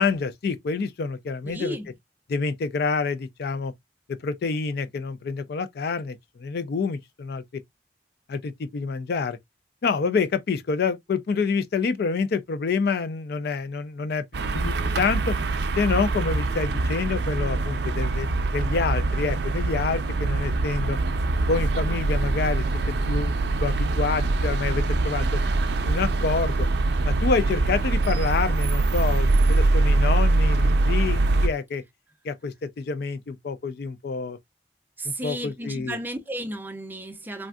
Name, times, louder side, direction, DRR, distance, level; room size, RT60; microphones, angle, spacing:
voice 1, 0.0-1.8 2.3-3.7 4.2-7.6 8.3-9.4 9.8-14.2 14.5-15.4 15.8-21.0 21.5-22.6 23.1-25.4 25.8-26.7 27.0-31.8 32.2-34.4 35.0-36.0, left 4 dB, 60° left, 0.4 m, -27 dB
voice 2, 1.4-1.9 35.0-37.5, right 1 dB, 10° right, 0.5 m, -33 dB
sound 1, 14.3-31.5, right 2 dB, 65° right, 0.5 m, -23 dB
3.3 x 2.5 x 2.3 m
head